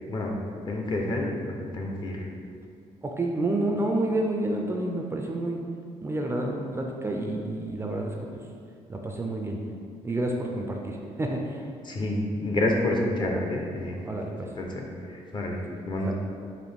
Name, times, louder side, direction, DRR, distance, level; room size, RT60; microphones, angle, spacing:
voice 1, 0.7-2.2 11.8-14.0 14.6-15.6 15.8-16.1, left 1 dB, 40° left, 0 dB, 0.6 m, -28 dB
voice 2, 3.0-5.6 6.0-8.1 8.9-9.6 10.0-11.6 14.1-14.5 16.1-16.2, right 1 dB, 20° right, 1 dB, 0.3 m, -29 dB
4.0 x 2.5 x 3.3 m, 2.3 s
cardioid pair, 95°, 12 cm